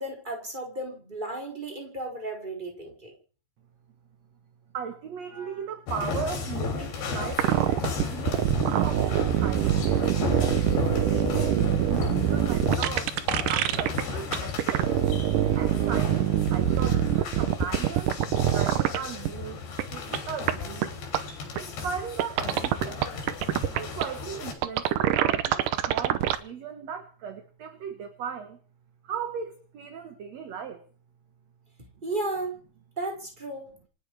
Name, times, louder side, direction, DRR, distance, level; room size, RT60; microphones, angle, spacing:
voice 1, 0.0-3.1 32.0-32.6 33.0-33.7, right 2 dB, 10° right, 1 dB, 4.6 m, -34 dB
voice 2, 4.7-13.1 13.5-14.9 15.6-18.2 18.4-20.9 21.6-23.1 23.7-28.6 29.0-30.8, right 7 dB, 55° right, 7 dB, 2.2 m, -37 dB
sound 1, 5.9-24.5, left 5 dB, 80° left, 5.5 m, -34 dB
sound 2, 7.3-14.0 14.3-19.0 19.2-19.3 19.8-19.9 20.1-20.2 20.5-20.6 20.8-20.9 21.1-21.2 21.6-21.7 22.2-24.0 24.6-26.4, right 12 dB, 70° right, 2.2 m, -24 dB
sound 3, 9.6-12.5, left 3 dB, 60° left, 6.9 m, -40 dB
27.5 x 10.5 x 4.9 m, 0.41 s
omnidirectional pair, 4.6 m